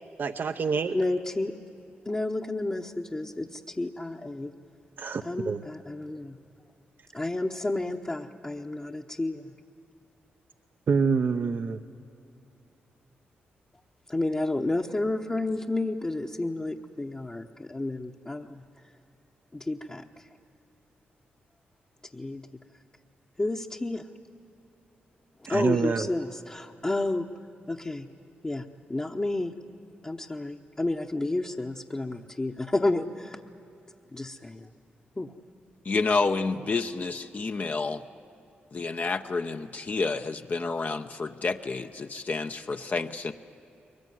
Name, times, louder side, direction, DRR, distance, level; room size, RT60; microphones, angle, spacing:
voice 1, 0.2-0.9 5.0-5.6 10.9-11.8 25.5-26.1, right 5 dB, 55° right, 8 dB, 0.8 m, -26 dB
voice 2, 0.9-1.5 2.1-4.5 5.2-6.4 7.1-9.5 14.1-18.6 19.5-20.0 22.1-22.4 23.4-24.0 25.5-27.3 27.7-28.1 28.4-29.5 30.0-33.4 34.1-34.7 35.2-35.3, left 2 dB, 25° left, -1 dB, 1.0 m, -30 dB
voice 3, 35.8-38.0 38.7-43.3, left 4 dB, 45° left, 6 dB, 0.8 m, -29 dB
22.5 x 20.0 x 9.5 m, 2.8 s
cardioid pair, 60°, 4 cm